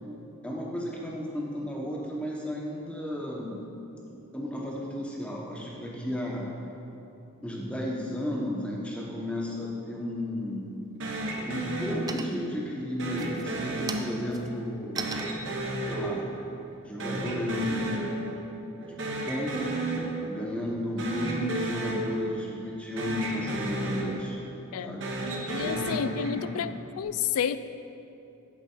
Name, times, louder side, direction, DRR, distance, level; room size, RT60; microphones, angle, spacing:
voice 1, 0.4-3.6 4.0-6.5 7.4-10.8 11.4-15.1 15.9-16.3 16.8-18.1 18.8-19.8 20.2-24.4 24.8-25.1 25.5-26.6, left 1 dB, 5° left, -3 dB, 1.0 m, -34 dB
sound 1, 10.4-11.0 11.4-11.8 12.1-12.6 13.1-17.5, right 4 dB, 15° right, 0.3 m, -40 dB
sound 2, 11.0-12.5 13.0-14.5 15.0-16.7 17.0-18.5 18.8-20.5 20.9-22.7 23.0-24.5 24.9-26.7, right 2 dB, 55° right, 1.1 m, -33 dB
voice 2, 25.5-26.7 27.0-27.6, left 8 dB, 80° left, 13 dB, 0.3 m, -30 dB
8.6 x 7.5 x 4.5 m, 2.9 s
head